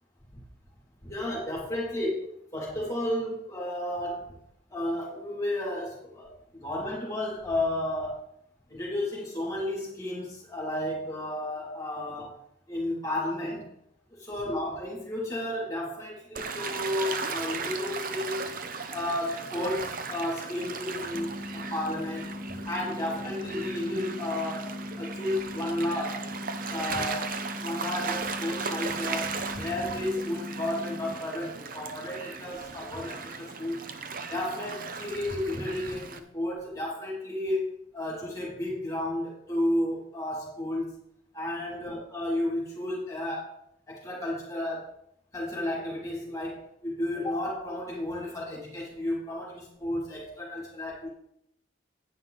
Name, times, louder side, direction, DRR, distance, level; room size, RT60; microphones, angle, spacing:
voice 1, 1.0-4.4 4.7-8.2 8.7-12.4 12.7-13.7 14.1-18.5 18.9-22.3 22.6-26.3 26.7-27.3 27.6-33.8 34.3-40.9 41.3-43.6 43.9-44.9 45.3-51.1, left 1 dB, 15° left, -4 dB, 2.6 m, -32 dB
Gull seagull / Waves surf, 16.4-36.2, right 5 dB, 50° right, 0.8 m, -37 dB
sound 1, 21.1-31.1, left 1 dB, ahead, 0.7 m, -39 dB
9.5 x 9.4 x 4.0 m, 0.74 s
head